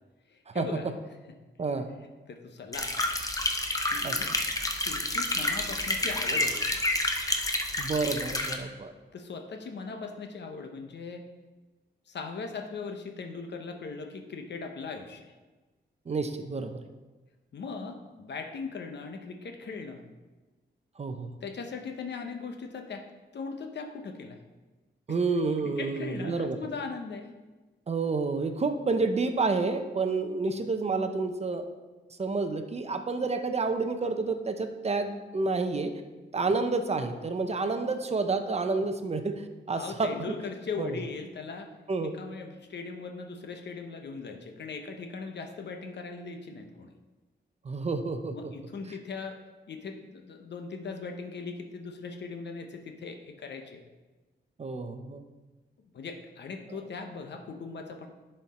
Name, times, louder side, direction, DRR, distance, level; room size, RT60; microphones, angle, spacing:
voice 1, 0.3-0.9 2.3-3.1 3.9-4.3 4.8-6.8 9.1-11.3 12.1-15.3 17.5-20.0 21.4-23.1 23.3-24.4 25.1-25.2 25.6-27.3 39.7-41.7 42.0-46.9 48.3-49.4 49.7-53.8 55.9-58.1, left 4 dB, 65° left, 4 dB, 0.9 m, -39 dB
voice 2, 1.6-1.9 4.0-4.1 7.8-8.9 16.1-16.8 21.0-21.3 25.1-26.7 27.9-31.7 32.2-35.9 36.3-40.4 40.8-41.0 41.9-42.2 47.6-48.5 54.6-55.2 56.7-56.8, right 3 dB, 35° right, 7 dB, 0.6 m, -29 dB
sound 1, 2.7-8.6, left 2 dB, 20° left, 0.7 m, -29 dB
10.0 x 4.5 x 4.2 m, 1.2 s
wide cardioid pair, 125°, 19 cm